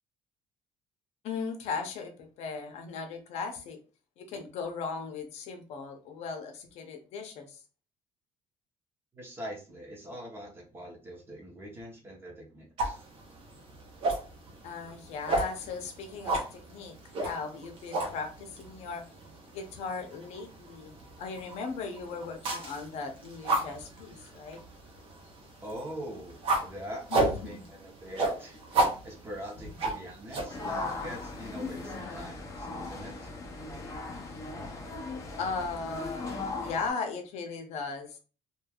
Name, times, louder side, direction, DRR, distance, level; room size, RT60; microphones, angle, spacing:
voice 1, 1.2-2.1 2.4-3.8 4.2-7.6 14.6-19.0 19.5-24.6 27.1-27.7 29.6-29.8 35.4-38.2, left 4 dB, 70° left, 4 dB, 0.7 m, -37 dB
voice 2, 9.1-13.0 25.6-33.3, equal, 20° right, -2 dB, 0.9 m, -43 dB
sound 1, 12.8-32.0, right 2 dB, 50° right, 0.8 m, -34 dB
sound 2, 30.5-36.9, left 3 dB, 25° left, 0.5 m, -38 dB
3.2 x 2.4 x 2.3 m, 0.34 s
cardioid pair, 160°, 11 cm